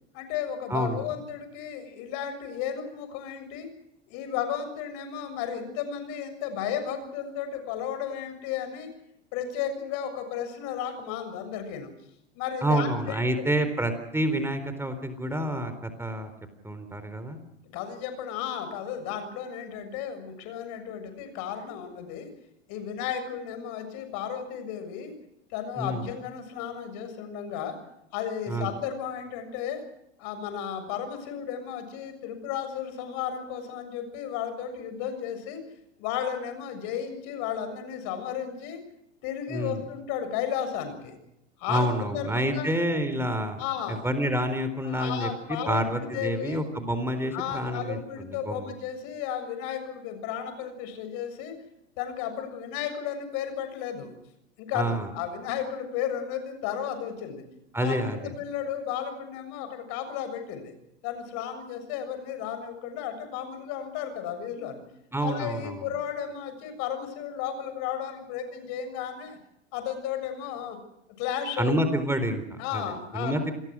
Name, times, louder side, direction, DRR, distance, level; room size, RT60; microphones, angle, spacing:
voice 1, 0.1-3.7 4.1-8.9 9.3-11.9 12.4-13.3 17.7-22.3 22.7-25.1 25.5-27.8 28.1-29.8 30.2-35.6 36.0-38.8 39.2-41.1 41.6-42.7 43.6-44.1 44.8-46.6 47.3-51.5 52.0-54.1 54.6-57.4 57.8-60.7 61.0-64.8 65.2-69.4 69.7-70.8 71.2-71.7 72.6-73.3, left 9 dB, 55° left, 9 dB, 7.1 m, -34 dB
voice 2, 0.7-1.1 12.6-16.3 16.6-17.4 25.8-26.0 28.5-28.7 39.5-39.8 41.7-43.6 43.9-48.7 54.7-55.1 57.7-58.3 65.1-65.7 71.6-73.5, right 1 dB, 5° right, 9 dB, 4.0 m, -28 dB
28.5 x 21.0 x 6.3 m, 0.80 s
hypercardioid pair, 90°, 36 cm